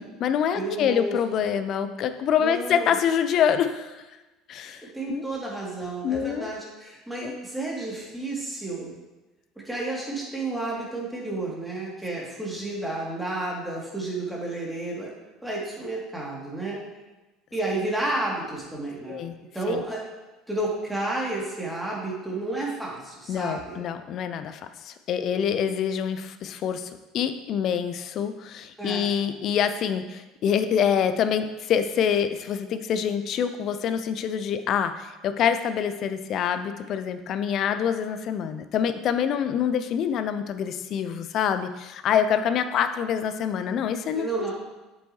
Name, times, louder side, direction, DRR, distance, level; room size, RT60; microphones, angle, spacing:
voice 1, 0.0-4.0 4.5-5.2 6.0-6.5 7.2-7.3 19.1-19.3 19.7-19.8 23.3-44.5, left 8 dB, 50° left, 10 dB, 0.5 m, -26 dB
voice 2, 0.6-1.2 2.4-2.9 4.9-8.9 9.6-15.1 15.4-16.8 17.5-19.2 19.5-20.0 20.5-23.8 28.8-29.1 44.1-44.5, right 2 dB, 5° right, -4 dB, 2.8 m, -31 dB
8.1 x 7.7 x 3.1 m, 1.1 s
figure-of-eight pair, 65°, 0 cm